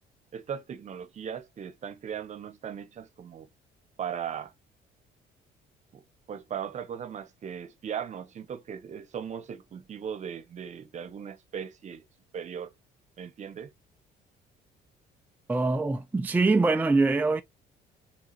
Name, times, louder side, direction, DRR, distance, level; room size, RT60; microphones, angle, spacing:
voice 1, 0.3-3.5 4.0-4.5 5.9-6.0 6.3-12.0 12.3-12.7 13.2-13.7, right 8 dB, 45° right, 0.9 m, -38 dB
voice 2, 15.5-17.4, right 3 dB, 10° right, 0.4 m, -23 dB
4.8 x 3.7 x 2.9 m
cardioid pair, 110°, 17 cm